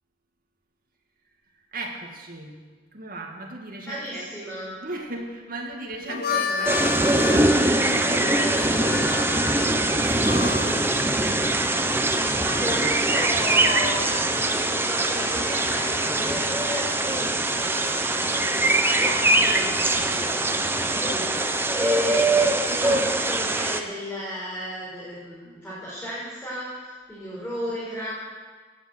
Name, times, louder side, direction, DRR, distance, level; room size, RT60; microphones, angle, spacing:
voice 1, 1.7-2.6 2.9-4.3 4.8-6.7 7.1-10.8 22.7-23.1, right 1 dB, 55° right, 1 dB, 2.4 m, -36 dB
voice 2, 3.8-4.7 6.1-6.8 12.4-28.1, equal, 5° left, -10 dB, 5.5 m, -34 dB
Harmonica, 5.9-10.9, left 5 dB, 55° left, 0.7 m, -31 dB
sound 1, 6.7-23.8, right 2 dB, 15° right, 0.9 m, -22 dB
17.0 x 8.9 x 8.2 m, 1.4 s
head